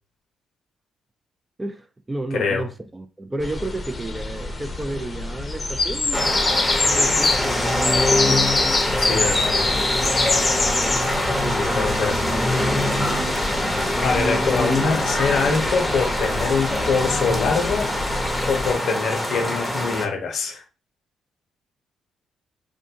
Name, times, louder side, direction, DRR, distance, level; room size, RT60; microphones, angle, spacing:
voice 1, 1.6-6.2 6.8-8.5 10.8-11.0 11.4-12.9, right 2 dB, 20° right, 0.4 m, -32 dB
voice 2, 2.3-2.7 9.0-9.6 11.6-12.2 14.0-17.9 18.5-20.6, left 5 dB, 70° left, 0.7 m, -24 dB
sound 1, 3.4-18.7, left 3 dB, 35° left, 0.6 m, -26 dB
sound 2, 6.1-20.1, left 1 dB, ahead, 0.8 m, -24 dB
2.5 x 2.2 x 2.8 m
supercardioid pair, 50°, 0 cm